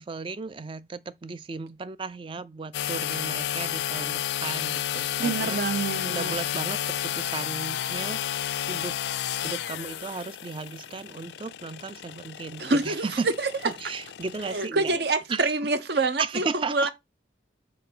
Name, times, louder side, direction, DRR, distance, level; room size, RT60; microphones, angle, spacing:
voice 1, 0.0-5.6 6.0-8.2 8.6-8.9 9.4-13.3 13.6-15.0 15.3-15.5 16.2-16.9, right 4 dB, 30° right, 0.4 m, -35 dB
sound 1, 2.7-14.7, left 11 dB, 65° left, 0.3 m, -32 dB
voice 2, 5.2-6.3 12.6-13.5 14.4-16.9, right 3 dB, 65° right, 0.8 m, -26 dB
4.6 x 3.9 x 5.4 m
head